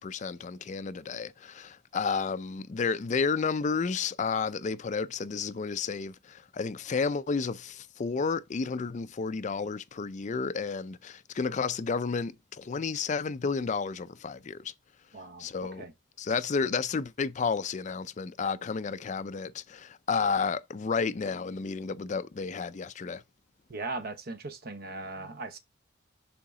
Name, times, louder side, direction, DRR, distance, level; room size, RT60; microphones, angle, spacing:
voice 1, 0.0-14.7 15.4-15.8 16.2-23.2, left 5 dB, 40° left, 0.4 m, -31 dB
voice 2, 15.1-15.9 23.7-25.6, right 3 dB, 50° right, 1.0 m, -39 dB
7.1 x 3.7 x 3.7 m
head